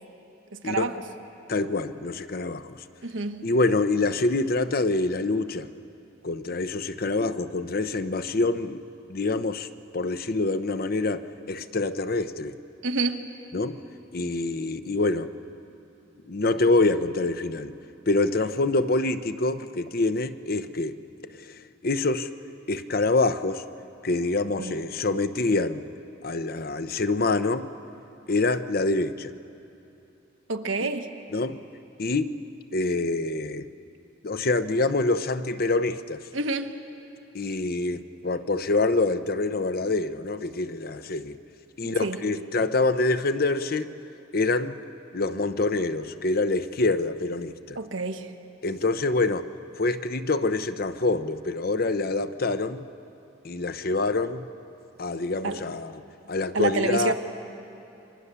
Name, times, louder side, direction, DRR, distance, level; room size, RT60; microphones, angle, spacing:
voice 1, 0.5-0.9 3.0-3.4 12.8-13.2 24.6-24.7 30.5-31.1 36.3-36.7 42.0-42.2 47.7-48.3 55.4-55.6 56.5-57.1, right 3 dB, 80° right, 5 dB, 1.4 m, -27 dB
voice 2, 1.5-2.8 3.4-5.7 6.2-8.8 9.1-9.7 9.9-12.5 13.5-13.8 14.1-15.3 16.3-17.7 18.1-21.0 21.3-22.3 22.7-23.6 24.0-25.8 26.2-27.7 28.3-29.3 30.8-30.9 31.3-31.6 32.0-32.3 32.7-33.7 34.2-36.2 37.3-41.4 41.8-43.9 44.3-44.8 45.1-47.8 48.6-49.5 49.8-52.9 53.4-54.5 55.0-56.0 56.3-57.1, left 2 dB, 50° left, 11 dB, 0.8 m, -26 dB
29.0 x 24.0 x 6.9 m, 2.9 s
head